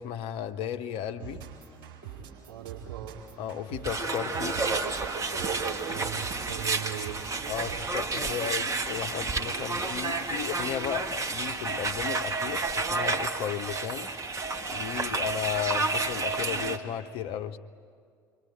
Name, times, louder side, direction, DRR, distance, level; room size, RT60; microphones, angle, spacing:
voice 1, 0.0-1.4 3.4-4.6 7.5-14.1 14.7-17.6, left 9 dB, 50° left, 1.0 m, -34 dB
sound 1, 1.2-8.1, right 8 dB, 55° right, 4.5 m, -44 dB
voice 2, 2.5-3.2 5.9-7.3, right 12 dB, 70° right, 4.2 m, -39 dB
sound 2, 3.8-16.8, right 3 dB, 25° right, 1.7 m, -30 dB
27.5 x 24.0 x 9.0 m
figure-of-eight pair, 60°, 12 cm